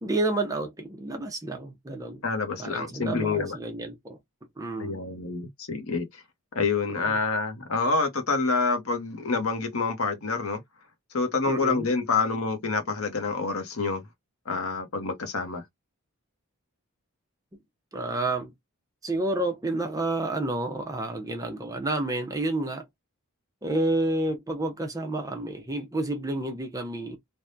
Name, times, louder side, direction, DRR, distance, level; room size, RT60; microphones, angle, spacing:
voice 1, 0.0-2.2 2.6-4.2 4.6-5.0 7.0-7.1 11.5-11.9 17.9-18.5 19.0-22.8 23.6-27.2, right 2 dB, 15° right, 0.7 m, -30 dB
voice 2, 2.2-3.6 4.8-6.2 6.5-10.6 11.1-14.0 14.5-15.6, left 4 dB, 70° left, 0.9 m, -27 dB
3.4 x 2.2 x 2.6 m
head